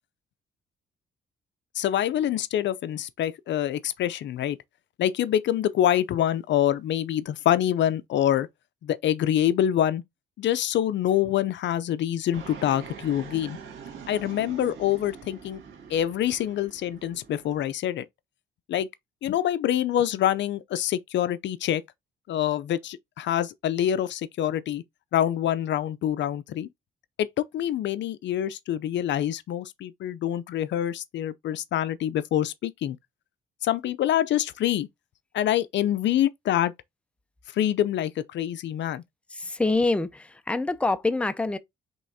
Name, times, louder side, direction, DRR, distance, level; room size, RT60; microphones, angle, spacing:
voice 1, 1.7-4.6 5.0-8.5 8.8-10.0 10.4-13.6 14.1-15.6 15.9-18.1 18.7-18.9 19.2-21.8 22.3-24.8 25.1-26.7 27.2-33.0 33.6-34.9 35.3-36.7 37.5-39.0, left 11 dB, 65° left, 0.5 m, -26 dB
Fixed-wing aircraft airplane, 12.3-17.7, right 6 dB, 75° right, 2.0 m, -44 dB
voice 2, 39.3-41.6, left 2 dB, 5° left, 0.5 m, -26 dB
5.4 x 3.5 x 2.7 m
cardioid pair, 90°, 20 cm